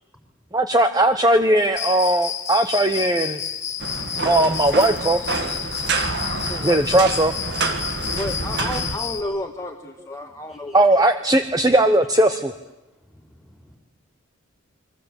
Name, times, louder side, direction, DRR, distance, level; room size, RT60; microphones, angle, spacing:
voice 1, 0.5-3.4 4.2-5.2 6.6-7.3 10.7-12.5, right 1 dB, 20° right, 8 dB, 0.9 m, -18 dB
Cricket, 1.8-9.2, left 8 dB, 35° left, 2.0 m, -30 dB
sound 1, 3.8-9.0, right 3 dB, 55° right, 2.3 m, -27 dB
voice 2, 6.5-7.0 8.1-11.1, left 1 dB, 15° left, 2 dB, 1.6 m, -32 dB
voice 3, 10.2-10.8 13.0-13.8, equal, ahead, 2 dB, 4.6 m, -54 dB
29.0 x 23.0 x 8.2 m, 1.0 s
head